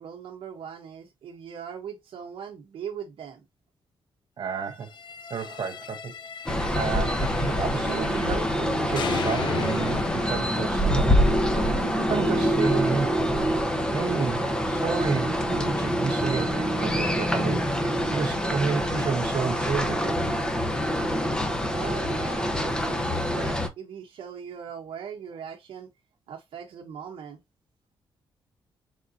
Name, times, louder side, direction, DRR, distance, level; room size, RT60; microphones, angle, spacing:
voice 1, 0.0-3.5 21.7-25.9 26.3-27.4, right 8 dB, 80° right, 1.0 m, -40 dB
voice 2, 4.4-4.9 5.3-20.3, right 6 dB, 50° right, 0.6 m, -32 dB
sound 1, 4.8-8.6 9.0-12.0, left 7 dB, 60° left, 0.4 m, -38 dB
sound 2, 6.5-23.7, equal, 10° left, 0.7 m, -25 dB
3.8 x 3.7 x 2.5 m
wide cardioid pair, 145°, 9 cm